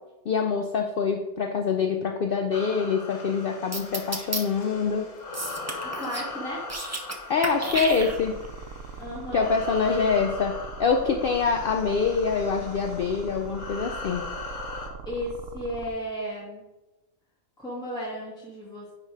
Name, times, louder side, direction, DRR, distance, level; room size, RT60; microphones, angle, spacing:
voice 1, 0.3-5.1 7.3-8.4 9.3-14.2, left 5 dB, 60° left, 4 dB, 0.6 m, -25 dB
sound 1, 2.5-14.9, left 3 dB, 75° left, 1.5 m, -40 dB
sound 2, 3.7-4.4 5.3-6.3 6.6-7.2 7.4-8.5, right 2 dB, 20° right, 0.5 m, -31 dB
voice 2, 5.8-6.7 9.0-9.5 9.9-10.2 15.0-16.6 17.6-18.9, equal, 5° left, -5 dB, 1.6 m, -34 dB
sound 3, 7.7-15.9, right 6 dB, 75° right, 1.0 m, -41 dB
9.5 x 3.2 x 4.8 m, 1.0 s
omnidirectional pair, 1.3 m